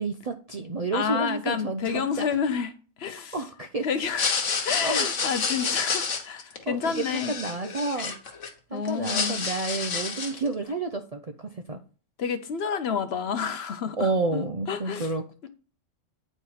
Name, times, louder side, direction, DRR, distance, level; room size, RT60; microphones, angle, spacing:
voice 1, 0.0-2.3 3.3-3.9 4.8-5.1 6.7-8.1 8.7-11.8 14.0-15.5, right 3 dB, 45° right, 0.5 m, -30 dB
voice 2, 0.9-2.7 3.0-3.4 3.8-7.3 8.7-9.4 12.2-15.1 15.4-15.5, left 7 dB, 60° left, 0.9 m, -29 dB
sound 1, 4.0-8.5 8.8-10.5, left 5 dB, 75° left, 1.5 m, -29 dB
8.7 x 4.4 x 4.8 m
omnidirectional pair, 1.3 m